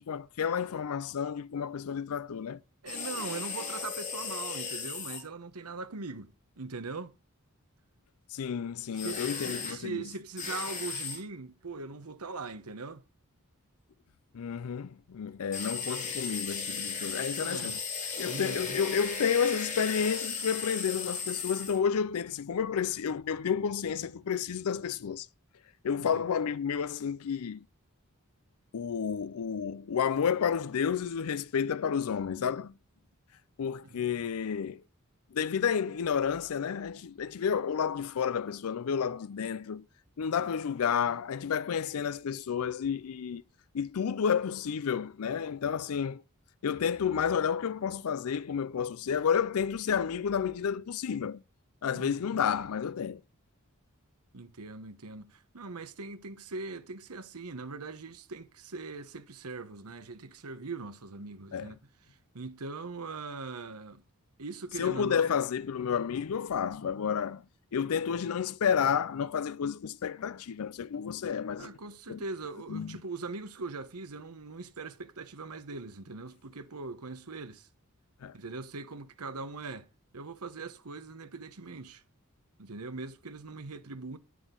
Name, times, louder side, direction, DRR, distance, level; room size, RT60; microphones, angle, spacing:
voice 1, 0.0-2.6 8.3-10.0 14.3-17.8 18.2-25.3 25.8-27.6 28.7-32.7 33.6-34.8 35.3-39.8 40.2-43.4 43.7-46.2 46.6-51.4 51.8-53.2 61.5-61.7 64.8-67.4 67.7-71.8 72.1-72.2 72.7-72.9 78.2-78.3, left 7 dB, 75° left, 0.4 m, -31 dB
voice 2, 2.8-7.1 8.9-13.0 17.4-17.8 18.2-18.8 26.1-26.2 33.8-34.0 51.9-52.2 54.3-61.8 62.1-64.0 64.4-65.3 71.6-77.7 78.3-79.9 80.1-82.0 82.6-84.2, right 3 dB, 90° right, 1.1 m, -41 dB
sound 1, 2.9-5.2 9.0-9.8 10.4-11.2 15.5-21.8, left 5 dB, 35° left, 3.4 m, -36 dB
10.0 x 9.9 x 3.8 m
head